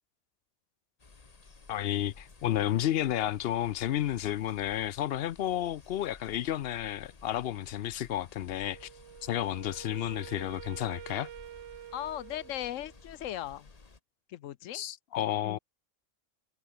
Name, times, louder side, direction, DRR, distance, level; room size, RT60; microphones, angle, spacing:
sound 1, 1.0-14.0, left 4 dB, 30° left, 1.4 m, -55 dB
voice 1, 1.7-8.9 9.2-11.3 14.7-15.6, left 12 dB, 60° left, 0.7 m, -31 dB
Wind instrument woodwind instrument, 8.7-13.0, right 12 dB, 70° right, 0.9 m, -48 dB
voice 2, 11.9-13.7 14.3-14.8 15.4-15.6, left 12 dB, 85° left, 1.1 m, -38 dB
omnidirectional pair, 1.3 m